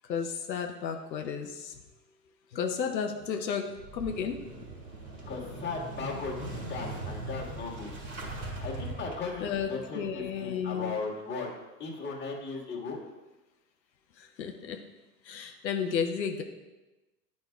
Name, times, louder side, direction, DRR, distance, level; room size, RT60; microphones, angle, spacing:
voice 1, 0.0-1.8 2.5-3.7 3.9-4.4 9.4-9.7 9.9-10.9 14.2-14.8 15.2-16.4, left 7 dB, 90° left, 4 dB, 0.7 m, -32 dB
Motorcycle / Engine starting, 3.7-9.6, right 2 dB, 30° right, 1.6 m, -40 dB
voice 2, 5.2-7.9 8.6-11.5 11.8-13.0, left 4 dB, 20° left, -3 dB, 1.7 m, -37 dB
9.4 x 5.2 x 2.3 m, 1.1 s
hypercardioid pair, 85°, 50 cm